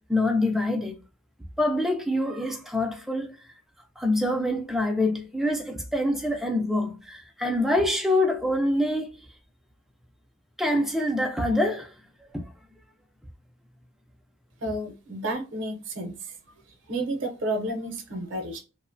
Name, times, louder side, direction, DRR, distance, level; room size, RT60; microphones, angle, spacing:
voice 1, 0.1-1.0 1.6-3.4 4.0-9.1 10.6-11.9 12.3-12.5, left 1 dB, ahead, 0.3 m, -25 dB
voice 2, 14.6-16.3 16.9-18.6, right 1 dB, 55° right, 0.6 m, -31 dB
2.9 x 2.0 x 2.4 m
head